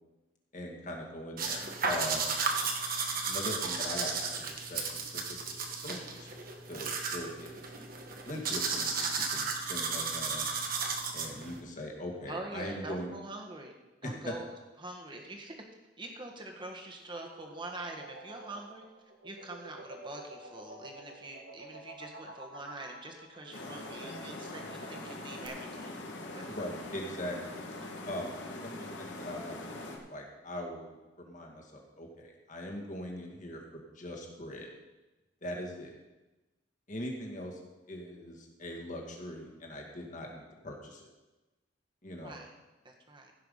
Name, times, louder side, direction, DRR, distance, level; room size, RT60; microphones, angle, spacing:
voice 1, 0.5-2.4 3.3-6.4 6.7-7.6 8.2-10.5 11.1-13.1 14.0-14.3 26.5-27.6 28.1-34.7 35.4-35.9 36.9-37.6 37.9-41.1 42.0-42.3, left 1 dB, 45° left, 0 dB, 2.1 m, -41 dB
sound 1, 1.4-11.6, right 4 dB, 50° right, 1.3 m, -34 dB
voice 2, 12.3-13.7 14.0-14.5 14.8-15.5 16.0-18.8 19.2-25.9 26.3-26.4 27.7-27.9 42.2-42.5 42.8-43.3, right 2 dB, 25° right, 1 dB, 1.6 m, -44 dB
sound 2, 17.0-25.5, right 2 dB, 70° right, 1.6 m, -49 dB
sound 3, 23.5-30.0, left 2 dB, 85° left, 1.8 m, -42 dB
15.5 x 5.9 x 5.6 m, 1.1 s
head